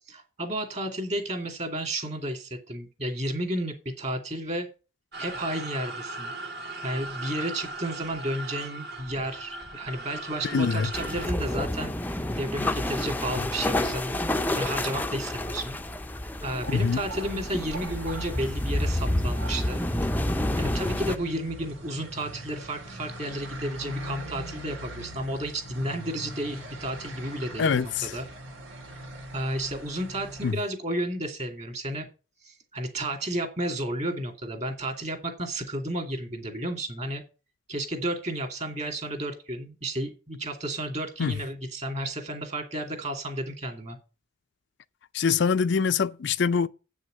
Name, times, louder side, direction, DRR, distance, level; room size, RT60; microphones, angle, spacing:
voice 1, 0.1-4.7 5.2-6.3 6.8-11.9 12.4-15.8 16.4-19.8 20.5-28.3 29.3-32.1 32.4-37.2 37.7-44.0, right 1 dB, 35° right, 2.5 m, -32 dB
sound 1, 5.1-11.3, right 2 dB, 55° right, 2.0 m, -38 dB
voice 2, 10.4-10.9 16.7-17.0 27.6-28.1 30.4-30.6 41.2-41.3 45.1-46.7, left 5 dB, 60° left, 0.4 m, -24 dB
sound 2, 10.9-21.2, left 1 dB, 10° left, 0.5 m, -29 dB
sound 3, 16.6-30.5, right 1 dB, 85° right, 3.0 m, -42 dB
8.3 x 6.3 x 7.7 m
head